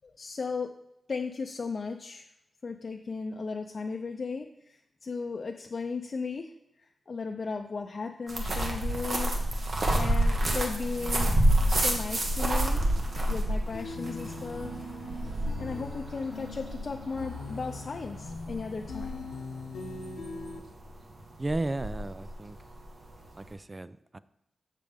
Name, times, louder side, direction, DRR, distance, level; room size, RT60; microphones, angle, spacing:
voice 1, 0.2-0.7 1.1-2.3 2.6-6.5 7.1-9.3 9.9-11.4 11.7-12.8 13.3-14.7 15.6-19.3, left 4 dB, 55° left, 3 dB, 0.5 m, -36 dB
sound 1, 8.3-23.5, right 1 dB, 55° right, 1.3 m, -29 dB
sound 2, 10.9-15.9, right 2 dB, 75° right, 1.2 m, -45 dB
sound 3, 13.7-20.6, left 3 dB, 80° left, 0.9 m, -41 dB
voice 2, 21.4-22.6 23.4-24.2, right 2 dB, 30° right, 15 dB, 0.3 m, -34 dB
7.4 x 6.4 x 3.5 m, 0.79 s
cardioid pair, 60°, 0 cm